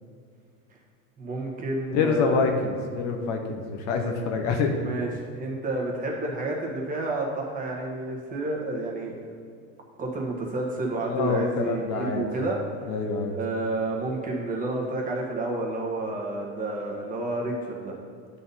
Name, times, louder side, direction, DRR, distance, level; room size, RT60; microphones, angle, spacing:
voice 1, 1.2-2.4 4.8-9.4 10.0-12.6 13.3-17.9, right 2 dB, 20° right, -1 dB, 1.3 m, -30 dB
voice 2, 1.9-4.7 11.0-12.3 12.9-13.4, left 4 dB, 45° left, 3 dB, 0.9 m, -26 dB
9.0 x 4.2 x 5.5 m, 2.2 s
supercardioid pair, 135°, 38 cm